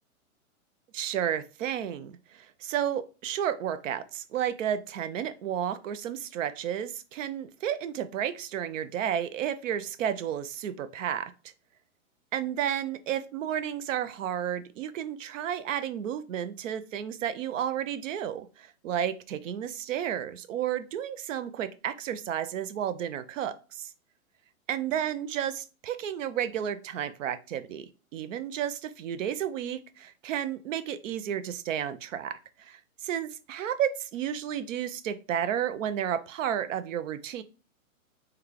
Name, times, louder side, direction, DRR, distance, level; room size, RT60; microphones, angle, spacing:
voice 1, 0.9-11.3 12.3-23.9 24.7-37.4, right 9 dB, 65° right, 12 dB, 0.5 m, -32 dB
3.2 x 2.2 x 3.7 m, 0.34 s
hypercardioid pair, 140°, 42 cm